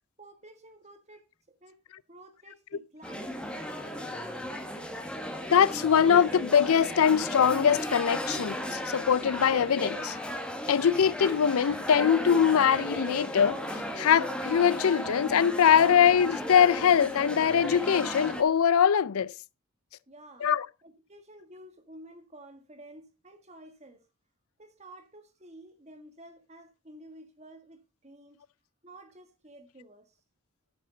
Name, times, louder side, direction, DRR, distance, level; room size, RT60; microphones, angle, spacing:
voice 1, 0.2-1.3 1.6-1.8 2.1-3.4 20.1-20.5 20.8-24.1 24.6-28.4 28.8-30.2, right 1 dB, 30° right, 1.6 m, -51 dB
sound 1, 3.0-18.4, equal, 5° left, 1.2 m, -35 dB
voice 2, 5.5-10.2 10.7-13.6 14.0-19.3 20.4-20.7, left 8 dB, 80° left, 0.4 m, -22 dB
12.5 x 6.4 x 3.9 m
head